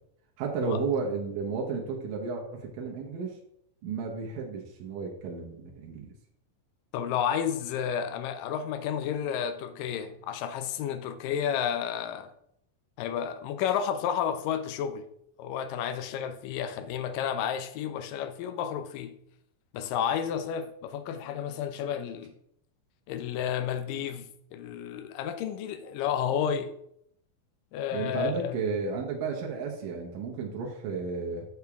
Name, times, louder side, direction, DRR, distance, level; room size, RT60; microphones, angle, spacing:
voice 1, 0.4-3.4 3.8-6.1 27.9-31.5, right 5 dB, 75° right, 2.8 m, -33 dB
voice 2, 6.9-12.3 13.0-15.1 15.4-19.2 19.7-22.3 23.1-26.7 27.7-28.6, left 8 dB, 80° left, 2.3 m, -31 dB
8.1 x 6.6 x 3.5 m
omnidirectional pair, 4.0 m